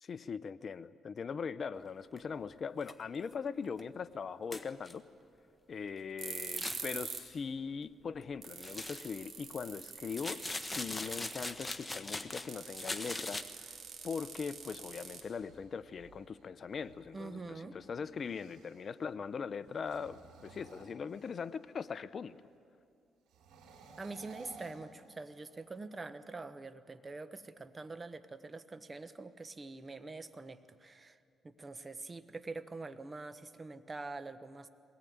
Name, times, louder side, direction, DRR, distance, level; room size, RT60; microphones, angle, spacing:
voice 1, 0.0-5.0 5.7-13.8 14.0-22.4, left 6 dB, 45° left, 15 dB, 0.6 m, -41 dB
sound 1, 2.2-2.3 2.8-2.9 3.3-3.4 3.8-3.9 4.5-4.9 6.4-6.9 8.6-9.2 10.1-12.5 12.8-13.4, left 2 dB, 15° left, 1.2 m, -40 dB
sound 2, 6.2-7.3 7.6-7.7 8.1-8.2 8.4-11.6 12.5-15.6, right 6 dB, 50° right, 3.6 m, -45 dB
sound 3, 15.3-18.9 19.7-21.7 23.3-25.6, right 4 dB, 90° right, 3.6 m, -57 dB
voice 2, 17.1-17.8 24.0-31.2 31.4-34.7, right 3 dB, 25° right, 12 dB, 1.1 m, -45 dB
22.0 x 18.5 x 9.4 m, 2.5 s
cardioid pair, 90°, 0 cm